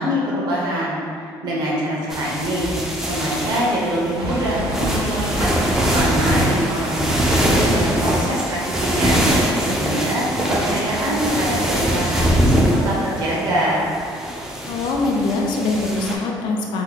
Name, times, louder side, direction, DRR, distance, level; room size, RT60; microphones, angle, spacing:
voice 1, 0.0-2.7 3.1-5.5 5.9-13.9, right 1 dB, 60° right, -5 dB, 0.8 m, -24 dB
sound 1, 2.1-16.2, equal, 5° right, 0.4 m, -22 dB
Explosion, 4.2-9.0, equal, 80° right, 1.0 m, -32 dB
voice 2, 14.7-16.8, left 3 dB, 70° left, 0 dB, 0.5 m, -22 dB
2.9 x 2.1 x 4.1 m, 2.3 s
cardioid pair, 145°, 8 cm